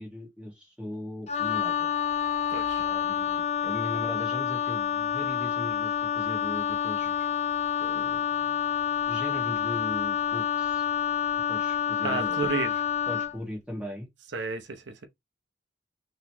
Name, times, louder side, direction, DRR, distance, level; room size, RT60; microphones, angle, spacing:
voice 1, 0.0-1.9 2.8-7.3 7.8-8.2 9.1-10.8 11.5-12.5 13.1-14.1, left 1 dB, 5° right, 1.3 m, -38 dB
Wind instrument woodwind instrument, 1.3-13.4, left 8 dB, 35° left, 0.5 m, -28 dB
voice 2, 2.5-2.9 12.0-12.8 14.3-15.1, right 4 dB, 70° right, 0.7 m, -32 dB
3.9 x 3.1 x 2.7 m
head